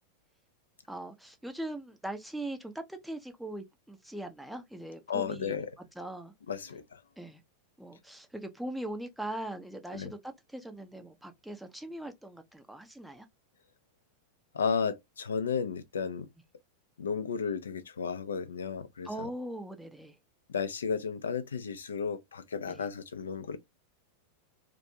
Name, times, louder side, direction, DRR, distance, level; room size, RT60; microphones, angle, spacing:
voice 1, 0.9-5.6 6.0-6.3 7.2-7.4 7.8-13.3 19.0-20.1 22.7-22.8, right 1 dB, ahead, 0.4 m, -40 dB
voice 2, 5.1-5.8 6.5-7.0 9.9-10.1 14.5-16.3 17.0-19.3 20.5-23.6, left 6 dB, 70° left, 0.4 m, -33 dB
2.4 x 2.2 x 2.7 m
figure-of-eight pair, 90°, 0 cm